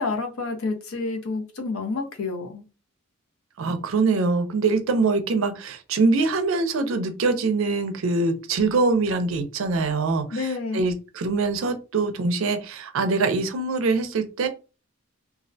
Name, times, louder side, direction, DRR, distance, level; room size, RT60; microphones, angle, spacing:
voice 1, 0.0-2.6 10.3-10.9, left 3 dB, 75° left, 4 dB, 0.6 m, -29 dB
voice 2, 3.6-14.5, right 3 dB, 65° right, 8 dB, 0.4 m, -23 dB
2.3 x 2.1 x 2.6 m, 0.32 s
head